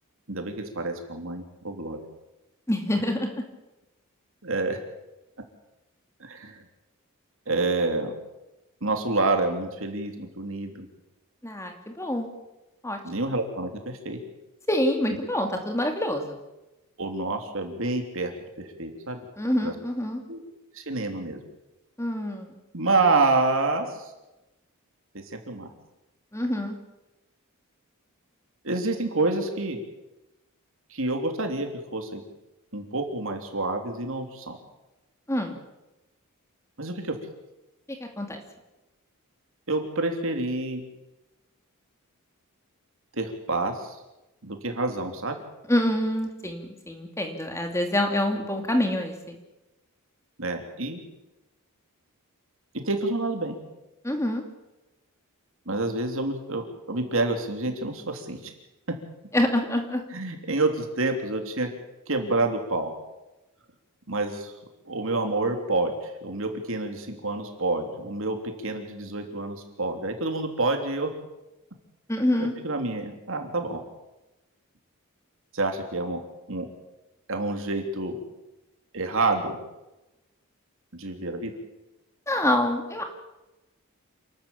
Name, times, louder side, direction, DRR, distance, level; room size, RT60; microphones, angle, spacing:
voice 1, 0.3-2.0 4.4-4.8 6.2-6.6 7.5-8.1 8.8-10.9 13.0-14.2 17.0-18.3 18.6-19.2 19.6-19.7 20.3-20.4 20.7-21.4 22.7-24.0 25.1-25.7 28.6-29.8 30.9-32.2 32.7-34.6 36.8-37.1 39.7-40.8 43.2-44.0 44.4-45.4 50.4-51.0 52.8-53.5 55.6-58.5 60.1-61.7 62.1-62.9 64.1-64.5 64.9-71.1 72.6-73.8 75.5-76.2 76.5-76.7 77.3-78.2 78.9-79.6 80.9-81.5, right 2 dB, 60° right, 5 dB, 3.3 m, -28 dB
voice 2, 2.7-3.4 11.4-12.3 12.8-13.0 14.7-16.4 19.4-20.2 22.0-22.6 26.3-26.8 35.3-35.6 38.0-38.4 45.7-49.4 54.0-54.4 59.3-60.0 72.1-72.5 82.3-83.0, left 1 dB, 15° left, 4 dB, 2.4 m, -26 dB
28.0 x 13.0 x 8.6 m, 1.0 s
head